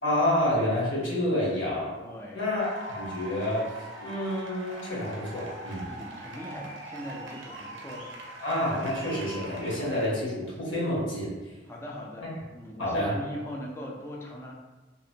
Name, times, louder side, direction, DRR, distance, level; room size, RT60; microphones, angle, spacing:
voice 1, 0.0-2.0 2.3-3.7 4.0-5.9 8.4-11.3 12.2-12.3 12.8-13.1, left 1 dB, 80° left, -6 dB, 1.0 m, -28 dB
voice 2, 2.0-2.5 5.9-8.1 11.7-14.5, equal, 15° left, -2 dB, 0.3 m, -40 dB
sound 1, 2.6-10.1, right 1 dB, 70° right, 0.5 m, -42 dB
2.8 x 2.1 x 2.6 m, 1.2 s
head